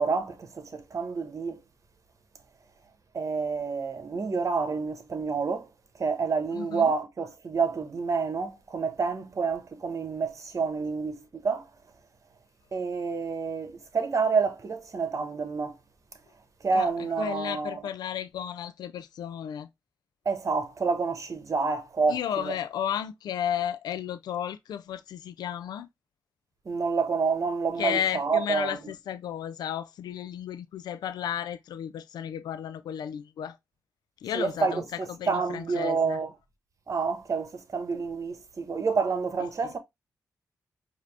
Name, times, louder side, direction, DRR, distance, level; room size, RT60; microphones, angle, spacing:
voice 1, 0.0-1.6 3.1-5.7 6.0-11.7 12.7-15.7 16.6-17.9 20.2-22.6 26.6-28.9 34.3-36.3 36.9-39.8, right 5 dB, 50° right, 1.1 m, -28 dB
voice 2, 6.5-6.9 16.7-16.9 17.2-19.7 22.1-25.9 27.8-33.6 34.2-34.8 35.2-36.2, left 9 dB, 90° left, 0.3 m, -33 dB
5.0 x 2.7 x 3.3 m
cardioid pair, 65°, 7 cm